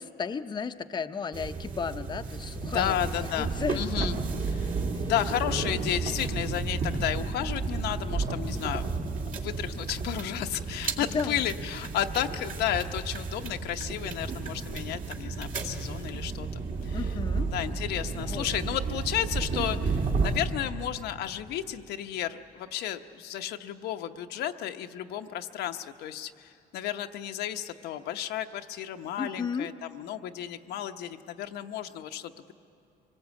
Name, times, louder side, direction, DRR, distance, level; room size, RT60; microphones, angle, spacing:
voice 1, 0.0-3.8 4.9-5.1 11.1-11.4 16.9-17.5 18.2-18.5 29.2-29.7, left 6 dB, 25° left, 7 dB, 0.7 m, -34 dB
sound 1, 1.3-20.5, right 4 dB, 55° right, 2.4 m, -32 dB
voice 2, 2.6-4.2 4.5-8.8 9.3-17.0 17.5-32.5, left 11 dB, 75° left, 6 dB, 0.9 m, -33 dB
24.5 x 19.5 x 8.2 m, 2.6 s
cardioid pair, 110°, 17 cm